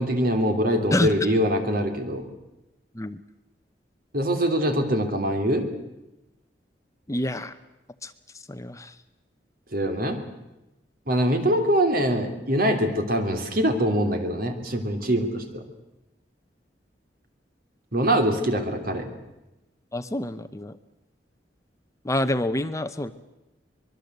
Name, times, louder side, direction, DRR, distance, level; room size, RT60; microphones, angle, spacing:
voice 1, 0.0-2.3 4.1-5.7 9.7-10.2 11.1-15.6 17.9-19.1, equal, 55° right, 6 dB, 3.2 m, -23 dB
voice 2, 0.9-1.4 2.9-3.2 7.1-7.6 8.0-9.0 19.9-20.8 22.0-23.1, left 1 dB, 20° left, 11 dB, 0.8 m, -28 dB
24.0 x 22.0 x 8.1 m, 0.97 s
head